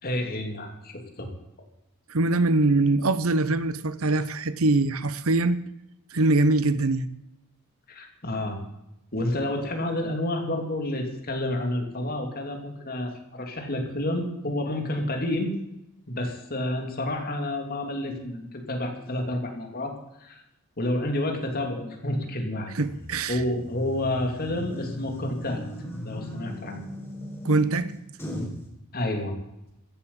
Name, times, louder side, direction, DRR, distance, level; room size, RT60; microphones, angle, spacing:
voice 1, 0.0-1.3 7.9-8.6 9.1-15.5 16.1-20.4 20.8-22.7 23.3-25.6 26.0-26.8 28.9-29.3, left 1 dB, 45° left, 2.9 m, -29 dB
voice 2, 2.1-5.6 6.1-7.1 22.7-23.4 27.4-27.9, right 2 dB, 75° right, 0.9 m, -23 dB
sound 1, 22.8-28.6, equal, 10° left, 4.1 m, -37 dB
14.5 x 8.4 x 8.7 m
head